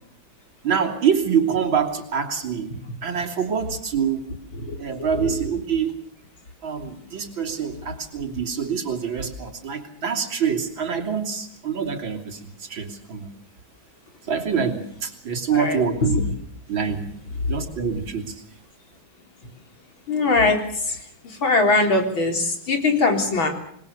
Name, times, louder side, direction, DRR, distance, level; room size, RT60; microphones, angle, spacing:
voice 1, 0.6-2.7 3.0-4.2 4.8-5.9 6.6-13.3 14.3-16.3 16.7-17.1 17.5-18.4, right 7 dB, 75° right, 2 dB, 3.8 m, -25 dB
voice 2, 4.6-5.4 14.5-14.7 15.5-16.1 17.4-17.5 20.1-21.0 21.2-23.5, left 3 dB, 80° left, 4 dB, 4.7 m, -22 dB
27.0 x 21.0 x 6.9 m, 0.65 s
omnidirectional pair, 2.2 m